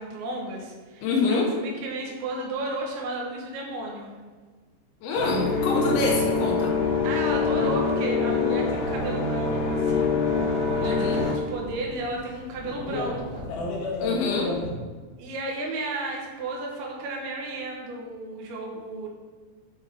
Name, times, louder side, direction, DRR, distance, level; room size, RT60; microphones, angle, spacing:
voice 1, 0.0-4.1 7.0-10.1 10.7-13.5 15.2-19.1, right 2 dB, 80° right, -1 dB, 3.2 m, -33 dB
voice 2, 1.0-1.5 5.0-6.8 10.9-11.2 14.0-14.5, left 3 dB, 90° left, -2 dB, 3.1 m, -26 dB
sound 1, 5.1-14.7, left 4 dB, 75° left, 1.9 m, -26 dB
8.1 x 3.3 x 3.6 m, 1.4 s
omnidirectional pair, 5.2 m